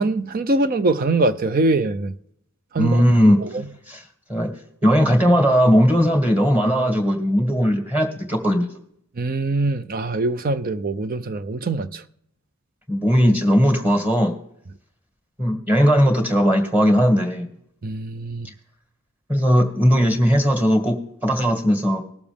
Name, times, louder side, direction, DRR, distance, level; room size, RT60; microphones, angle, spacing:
voice 1, 0.0-2.1 2.7-3.0 3.4-3.7 9.2-12.0 17.8-18.5, right 2 dB, 40° right, 0.5 m, -23 dB
voice 2, 2.8-3.4 3.9-4.0 4.3-4.5 4.8-8.7 12.9-14.3 15.4-17.5 19.3-22.0, equal, 10° right, 2.0 m, -18 dB
19.5 x 7.1 x 3.5 m
head